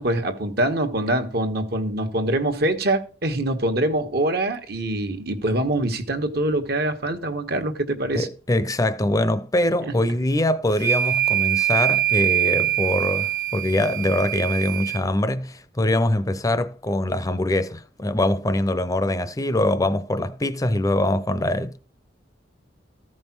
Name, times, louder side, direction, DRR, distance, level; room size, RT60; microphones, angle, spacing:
voice 1, 0.0-8.3 9.9-10.0, right 1 dB, 60° right, 1.4 m, -24 dB
voice 2, 8.1-21.8, left 1 dB, 20° left, 0.6 m, -23 dB
sound 1, 10.7-15.0, right 12 dB, 80° right, 1.3 m, -23 dB
14.0 x 5.5 x 6.0 m
head